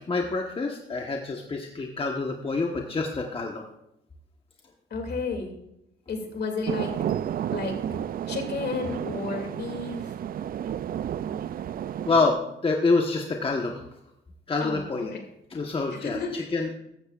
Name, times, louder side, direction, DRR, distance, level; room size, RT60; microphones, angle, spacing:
voice 1, 0.0-3.6 12.0-12.4 12.6-13.8 14.5-15.1 15.5-16.2 16.5-16.7, left 3 dB, 25° left, 1 dB, 1.2 m, -26 dB
voice 2, 4.9-5.5 6.1-6.9 7.5-7.8 8.3-10.1 14.6-15.2 15.9-16.5, left 4 dB, 55° left, 3 dB, 2.6 m, -32 dB
sound 1, 6.7-12.3, right 10 dB, 45° right, 0.4 m, -31 dB
15.0 x 13.0 x 2.5 m, 0.80 s
cardioid pair, 90°, 20 cm